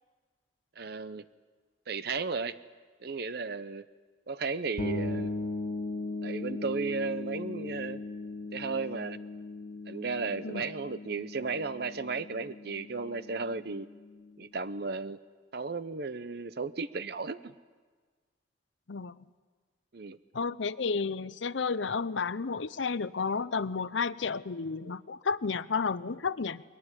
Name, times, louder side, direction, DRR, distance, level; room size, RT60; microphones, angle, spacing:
voice 1, 0.8-1.3 1.9-2.5 3.0-3.9 4.3-5.3 6.2-8.0 8.5-9.2 9.9-13.9 14.4-15.2 15.5-17.5 19.9-20.2, right 4 dB, 55° right, 13 dB, 0.7 m, -34 dB
sound 1, 4.8-14.4, left 2 dB, 40° left, 1.9 m, -38 dB
voice 2, 20.3-26.6, left 5 dB, 75° left, 16 dB, 0.7 m, -32 dB
22.5 x 22.5 x 9.8 m, 1.5 s
head